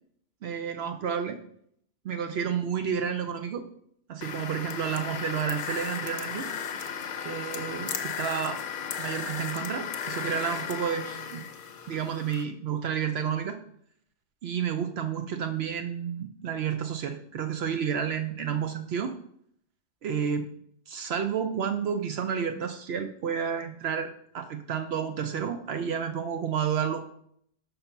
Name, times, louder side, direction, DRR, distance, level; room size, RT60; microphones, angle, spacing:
voice 1, 0.4-1.4 2.0-3.6 4.1-6.5 7.2-8.6 9.0-11.4 11.9-13.6 14.4-19.1 20.0-20.5 20.9-27.1, right 7 dB, 65° right, 7 dB, 0.8 m, -30 dB
sound 1, 4.2-12.4, left 7 dB, 55° left, 0.7 m, -35 dB
5.5 x 3.5 x 5.7 m, 0.68 s
omnidirectional pair, 1.2 m